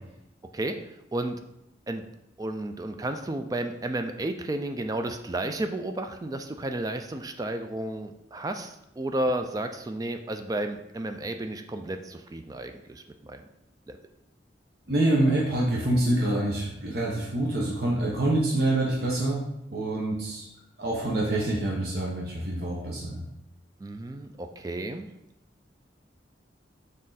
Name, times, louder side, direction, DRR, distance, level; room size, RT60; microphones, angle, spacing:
voice 1, 0.4-0.8 1.1-1.4 1.9-2.0 2.4-13.5 13.9-14.0 23.8-25.1, right 1 dB, 20° right, 7 dB, 0.3 m, -32 dB
voice 2, 14.9-19.4 19.7-20.5 20.8-23.2, right 1 dB, 60° right, -4 dB, 1.0 m, -26 dB
6.4 x 3.7 x 4.0 m, 0.85 s
head